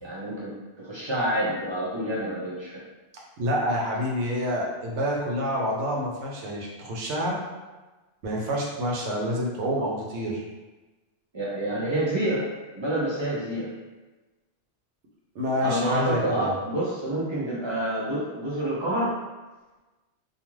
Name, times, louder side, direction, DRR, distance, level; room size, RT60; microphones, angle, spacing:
voice 1, 0.0-2.8 11.3-12.5 12.7-13.7 15.6-19.2, right 1 dB, 50° right, -7 dB, 0.3 m, -28 dB
voice 2, 3.4-7.4 8.2-10.4 15.3-16.6, equal, 75° right, -2 dB, 0.9 m, -28 dB
2.4 x 2.3 x 3.0 m, 1.2 s
omnidirectional pair, 1.2 m